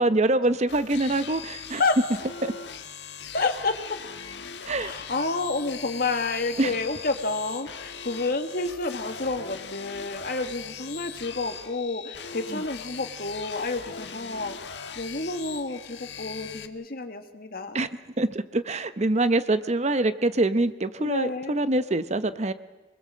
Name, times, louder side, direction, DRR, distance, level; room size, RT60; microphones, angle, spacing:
voice 1, 0.0-1.8 2.4-2.5 4.7-4.9 6.6-6.8 12.5-12.6 17.7-17.9 18.2-22.5, right 2 dB, 40° right, 12 dB, 0.9 m, -24 dB
sound 1, 0.7-16.7, left 7 dB, 85° left, 1.5 m, -40 dB
voice 2, 3.3-3.7 4.8-17.9 21.0-21.6, left 3 dB, 55° left, 6 dB, 2.0 m, -29 dB
26.5 x 21.0 x 7.7 m, 1.2 s
head